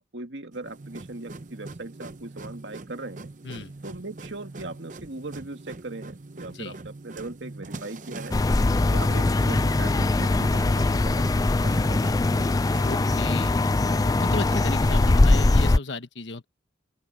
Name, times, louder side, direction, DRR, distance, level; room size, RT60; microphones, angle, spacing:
voice 1, 0.0-3.3 3.8-8.4 8.9-11.3 11.6-12.4, right 2 dB, 70° right, 2.0 m, -39 dB
sound 1, 0.5-15.4, right 2 dB, 45° right, 0.8 m, -42 dB
sound 2, 8.3-15.8, left 2 dB, 20° left, 0.3 m, -21 dB
voice 2, 12.8-13.5 14.0-16.5, left 3 dB, 75° left, 1.4 m, -35 dB
open air
head